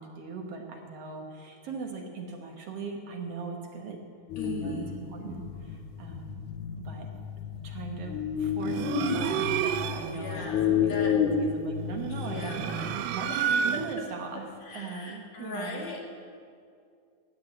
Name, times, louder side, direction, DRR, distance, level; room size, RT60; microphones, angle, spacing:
voice 1, 0.0-4.0 4.4-6.4 6.8-7.1 7.6-15.8, right 4 dB, 60° right, 2 dB, 2.0 m, -39 dB
sound 1, 4.3-13.0, left 7 dB, 90° left, 2.5 m, -31 dB
voice 2, 4.4-5.0 10.1-11.1 12.1-12.9 13.3-13.4 14.6-16.0, left 1 dB, 60° left, -1 dB, 3.2 m, -39 dB
sound 2, 8.6-10.2 12.1-14.1, right 8 dB, 75° right, 1.5 m, -30 dB
13.5 x 9.7 x 8.6 m, 2.3 s
omnidirectional pair, 3.4 m